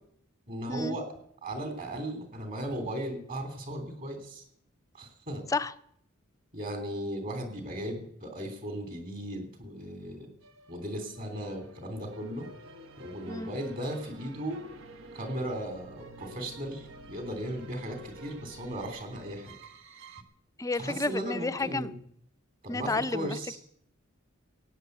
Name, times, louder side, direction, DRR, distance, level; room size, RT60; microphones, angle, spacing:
voice 1, 0.5-1.1 1.4-4.4 4.9-5.4 6.5-10.3 10.7-12.5 13.0-14.6 15.1-19.5 20.8-22.0 22.6-23.6, right 1 dB, 45° right, 5 dB, 3.3 m, -36 dB
sound 1, 10.4-20.2, right 2 dB, 80° right, 1.3 m, -50 dB
voice 2, 20.6-21.9 22.7-23.6, left 3 dB, 15° left, 13 dB, 0.5 m, -31 dB
17.0 x 8.9 x 8.1 m, 0.68 s
head